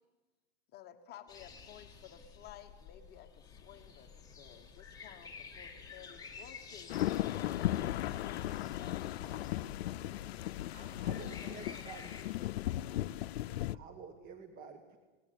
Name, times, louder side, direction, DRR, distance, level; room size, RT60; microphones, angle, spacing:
voice 1, 0.7-9.1, left 10 dB, 30° left, 7 dB, 1.3 m, -55 dB
sound 1, 1.3-12.2, left 5 dB, 10° left, 2.5 m, -52 dB
sound 2, 6.9-13.8, left 14 dB, 80° left, 0.6 m, -36 dB
voice 2, 9.1-9.8 10.6-12.1, right 3 dB, 65° right, 4 dB, 7.6 m, -60 dB
voice 3, 11.0-12.0 13.7-15.0, right 6 dB, 30° right, 7 dB, 1.4 m, -49 dB
18.5 x 18.0 x 8.7 m, 1.3 s
supercardioid pair, 135°, 31 cm